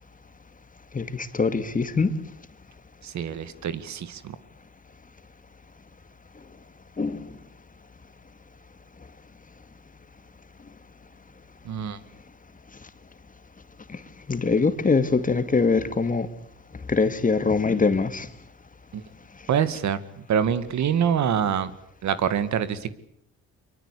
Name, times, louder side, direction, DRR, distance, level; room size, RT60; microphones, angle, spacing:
voice 1, 0.9-2.2 7.0-7.3 13.9-14.0 14.3-16.3 16.9-18.3, left 4 dB, 25° left, 2.2 m, -23 dB
voice 2, 3.0-4.4 11.7-12.0 18.9-19.0 19.5-20.0 20.3-21.7 22.0-22.9, right 8 dB, 65° right, 2.0 m, -25 dB
24.5 x 24.0 x 8.5 m
cardioid pair, 90°, 30 cm